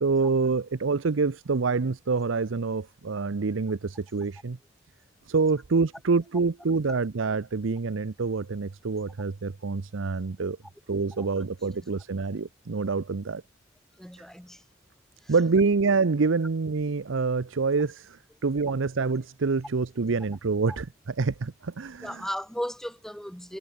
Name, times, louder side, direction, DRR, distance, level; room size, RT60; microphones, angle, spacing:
voice 1, 0.0-4.6 5.3-10.6 10.9-13.4 15.3-22.3, right 4 dB, 80° right, 0.7 m, -26 dB
voice 2, 14.0-14.6 15.2-15.3 22.0-23.6, equal, ahead, 1.5 m, -36 dB
head